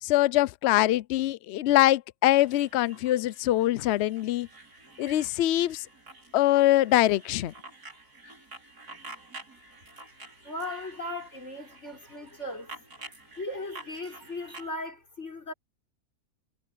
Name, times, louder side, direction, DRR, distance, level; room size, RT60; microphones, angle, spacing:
voice 1, 0.0-4.5 5.0-5.9 6.3-7.5, left 14 dB, 70° left, 0.6 m, -23 dB
sound 1, 2.4-14.7, right 2 dB, 85° right, 5.8 m, -49 dB
voice 2, 10.4-12.7 13.4-15.5, left 1 dB, 45° left, 5.9 m, -37 dB
omnidirectional pair, 1.6 m